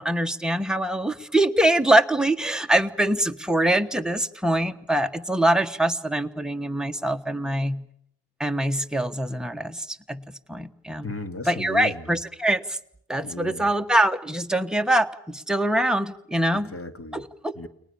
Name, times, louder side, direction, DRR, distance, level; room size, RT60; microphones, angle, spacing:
voice 1, 0.0-7.9 8.4-11.1 11.5-12.8 13.1-16.7 17.1-17.6, right 1 dB, ahead, 6 dB, 1.3 m, -24 dB
voice 2, 11.0-12.0 13.2-13.7 16.5-17.3 17.6-17.7, left 2 dB, 35° left, 7 dB, 2.3 m, -35 dB
30.0 x 22.5 x 7.0 m, 0.71 s
wide cardioid pair, 120°, 40 cm